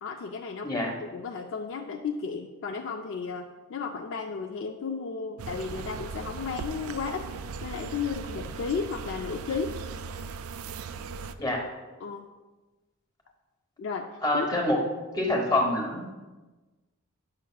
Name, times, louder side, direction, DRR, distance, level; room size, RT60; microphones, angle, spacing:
voice 1, 0.0-7.3 7.6-9.8 12.0-12.3 13.8-14.1 14.3-14.5, left 5 dB, 55° left, 4 dB, 0.3 m, -34 dB
voice 2, 0.6-0.9 11.4-11.6 14.2-14.8 15.1-16.1, left 1 dB, 20° left, -1 dB, 1.1 m, -26 dB
sound 1, 5.4-11.3, right 5 dB, 75° right, 0.3 m, -38 dB
9.3 x 6.4 x 2.3 m, 1.2 s
head